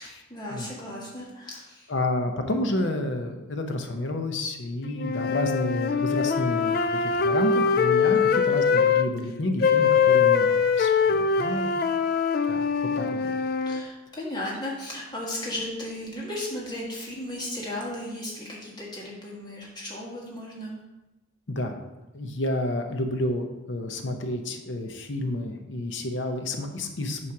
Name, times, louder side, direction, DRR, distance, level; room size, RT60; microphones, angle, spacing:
voice 1, 0.0-1.9 8.1-8.4 13.6-20.7, left 1 dB, 20° left, -4 dB, 1.7 m, -35 dB
voice 2, 1.9-8.2 8.4-11.7 12.5-12.6 13.0-13.3 21.5-21.8 22.1-27.3, left 1 dB, 70° left, 4 dB, 0.8 m, -30 dB
sound 1, 5.0-9.1 9.6-13.8, left 6 dB, 50° left, 0.4 m, -23 dB
8.5 x 3.2 x 5.9 m, 1.0 s
head